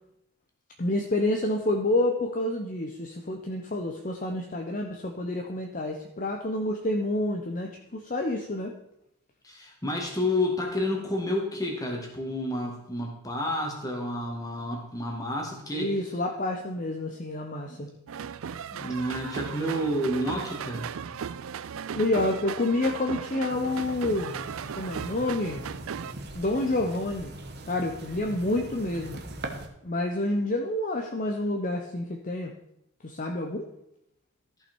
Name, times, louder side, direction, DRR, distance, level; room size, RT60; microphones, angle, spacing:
voice 1, 0.8-8.7 15.7-17.9 21.9-24.3 24.7-25.6 26.3-27.3 27.7-29.2 29.8-32.5 33.0-33.6, left 1 dB, 35° left, 2 dB, 0.7 m, -28 dB
voice 2, 9.4-16.0 17.7-17.9 18.8-20.9, left 1 dB, 15° left, 0 dB, 1.9 m, -30 dB
sound 1, 18.1-26.1, right 7 dB, 65° right, 0.4 m, -37 dB
sound 2, 23.5-29.7, right 2 dB, 45° right, 1.0 m, -41 dB
14.0 x 5.8 x 4.5 m, 0.80 s
head